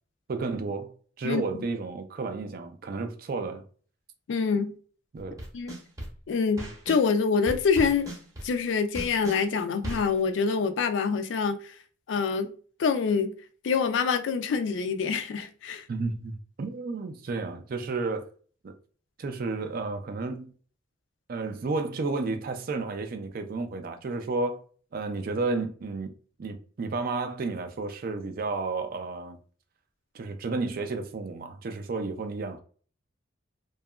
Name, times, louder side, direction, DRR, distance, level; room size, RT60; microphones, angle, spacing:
voice 1, 0.3-3.6 5.1-5.4 15.9-16.3 16.6-18.3 18.6-18.7 19.2-20.5 21.3-24.6 24.9-26.1 26.4-29.4 30.1-32.6, right 3 dB, 50° right, 0.4 m, -32 dB
voice 2, 1.2-1.6 4.3-4.7 5.5-5.8 6.3-8.1 8.4-11.7 12.1-12.5 12.8-13.3 13.6-15.8, left 5 dB, 65° left, 0.3 m, -26 dB
sound 1, 5.2-7.1 7.5-10.2, right 1 dB, 20° right, 0.7 m, -37 dB
2.8 x 2.3 x 2.2 m
head